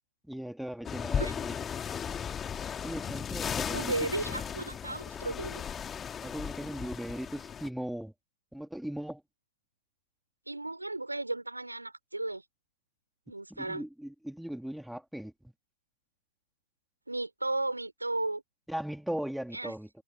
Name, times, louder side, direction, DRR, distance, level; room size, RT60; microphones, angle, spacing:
voice 1, 0.3-1.5 2.8-4.3 6.2-8.1 8.5-9.2 13.5-15.3 18.7-19.9, equal, ahead, 2.6 m, -38 dB
sound 1, 0.8-7.7, left 7 dB, 20° left, 1.9 m, -36 dB
voice 2, 3.7-5.7 10.5-12.4 13.3-13.9 17.1-18.4 19.5-19.7, right 2 dB, 90° right, 4.9 m, -34 dB
figure-of-eight pair, 110°, 0 cm